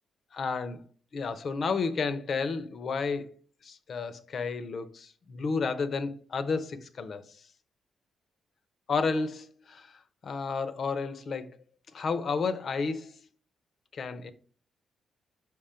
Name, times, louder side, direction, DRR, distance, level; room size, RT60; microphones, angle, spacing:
voice 1, 0.3-0.8 1.1-3.3 3.6-7.2 8.9-11.6 11.9-13.2 13.9-14.3, left 4 dB, 55° left, 0.7 m, -31 dB
6.0 x 3.8 x 4.3 m
cardioid pair, 100°, 0 cm